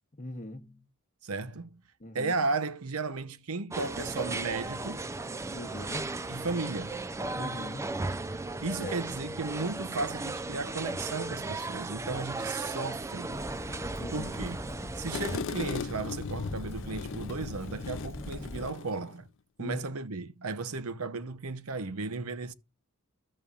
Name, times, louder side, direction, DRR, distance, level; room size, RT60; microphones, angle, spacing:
voice 1, 0.2-0.8 2.0-2.3 5.5-6.1 7.4-8.0 8.8-9.0 14.0-14.4 19.6-19.8, left 1 dB, 35° left, 1.0 m, -40 dB
voice 2, 1.2-1.7 2.1-5.0 6.3-7.0 8.6-13.3 14.1-14.6 15.0-19.2 19.6-22.5, right 3 dB, 75° right, 0.8 m, -34 dB
sound 1, 3.7-15.4, right 2 dB, 15° right, 0.3 m, -36 dB
Fire, 13.3-18.7, left 1 dB, 10° left, 1.0 m, -42 dB
sound 2, 15.1-19.2, left 6 dB, 60° left, 0.4 m, -38 dB
13.0 x 6.9 x 2.4 m
head